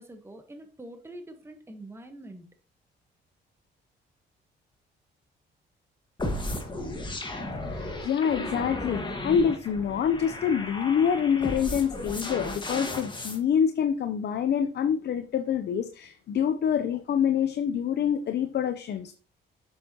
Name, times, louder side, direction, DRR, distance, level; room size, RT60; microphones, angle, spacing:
voice 1, 0.0-2.5, right 1 dB, 10° right, 5 dB, 1.3 m, -45 dB
sound 1, 6.2-13.4, left 1 dB, 25° left, 1.6 m, -34 dB
voice 2, 7.7-19.1, left 8 dB, 55° left, 8 dB, 0.7 m, -26 dB
7.4 x 6.4 x 2.9 m, 0.39 s
cardioid pair, 90°, 20 cm